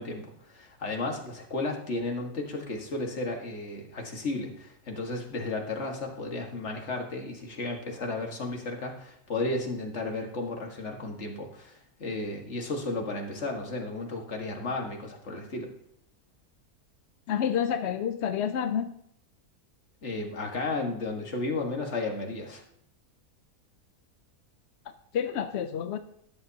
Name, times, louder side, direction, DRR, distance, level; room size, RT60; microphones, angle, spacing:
voice 1, 0.0-15.7 20.0-22.6, left 2 dB, 45° left, 2 dB, 1.9 m, -33 dB
voice 2, 17.3-18.9 25.1-26.0, left 8 dB, 65° left, 8 dB, 0.7 m, -28 dB
12.5 x 9.7 x 2.8 m, 0.73 s
omnidirectional pair, 1.7 m